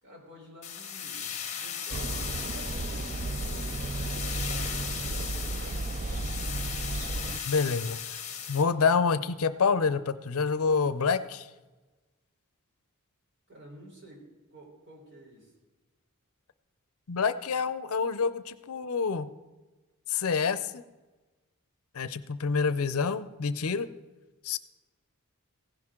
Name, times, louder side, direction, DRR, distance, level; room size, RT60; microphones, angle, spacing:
voice 1, 0.0-6.6 13.5-15.5, right 1 dB, 55° right, -1 dB, 3.8 m, -51 dB
sound 1, 0.6-8.6, left 8 dB, 30° left, 1.3 m, -37 dB
sound 2, 1.9-7.4, right 2 dB, 35° right, 0.4 m, -33 dB
voice 2, 7.5-8.0 8.5-11.5 17.1-19.3 20.1-20.8 21.9-23.9 24.4-24.6, left 5 dB, 70° left, 14 dB, 0.6 m, -27 dB
16.0 x 10.5 x 3.7 m, 1.2 s
head